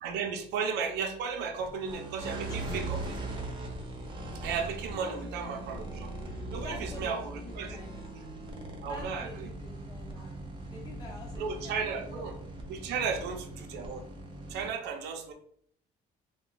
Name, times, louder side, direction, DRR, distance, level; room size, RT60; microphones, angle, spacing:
voice 1, 0.0-3.0 4.4-6.1 6.5-7.8 8.1-8.2 8.8-9.5 10.2-10.3 11.4-12.3 12.7-14.0 14.5-15.3, right 5 dB, 85° right, 4 dB, 0.5 m, -34 dB
sound 1, 1.6-14.7, right 2 dB, 30° right, 0.7 m, -40 dB
voice 2, 2.5-2.9 5.0-5.3 6.6-7.2 7.4-8.1 8.8-10.3 10.7-12.2, left 2 dB, 25° left, -3 dB, 0.9 m, -47 dB
Acoustic guitar / Strum, 2.7-5.8, left 4 dB, 75° left, 0.7 m, -52 dB
2.3 x 2.2 x 3.8 m, 0.62 s
cardioid pair, 110°, 17 cm